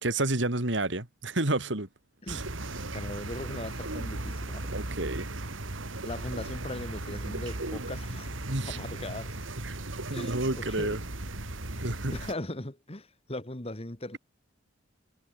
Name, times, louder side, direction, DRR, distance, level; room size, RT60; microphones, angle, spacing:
voice 1, 0.0-1.9 2.3-2.4 4.7-5.3 8.5-8.8 9.6-9.8 10.1-11.0 11.8-12.2, right 2 dB, 65° right, 2.9 m, -30 dB
sound 1, 2.3-12.3, right 2 dB, 90° right, 3.0 m, -37 dB
voice 2, 2.9-4.8 6.0-9.4 10.1-11.0 11.7-11.8 12.1-14.2, left 1 dB, 30° left, 2.1 m, -39 dB
head